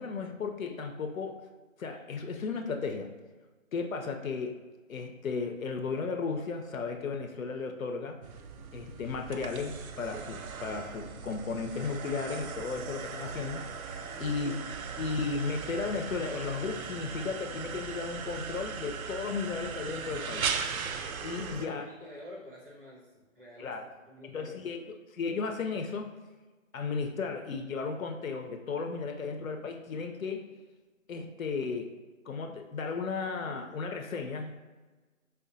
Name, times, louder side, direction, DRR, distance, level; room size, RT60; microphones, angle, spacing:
voice 1, 0.0-1.4 1.8-3.1 3.7-4.6 4.9-8.2 8.7-14.5 15.0-20.5 21.2-21.9 23.6-23.8 24.2-24.8 25.1-26.1 26.7-30.5 31.1-31.9 32.3-34.6, left 4 dB, 75° left, 5 dB, 0.6 m, -35 dB
sound 1, 8.2-21.7, right 6 dB, 90° right, 0.5 m, -38 dB
voice 2, 21.5-24.6, left 1 dB, 40° right, -8 dB, 1.4 m, -49 dB
5.0 x 2.1 x 2.6 m, 1.3 s
hypercardioid pair, 180°, 41 cm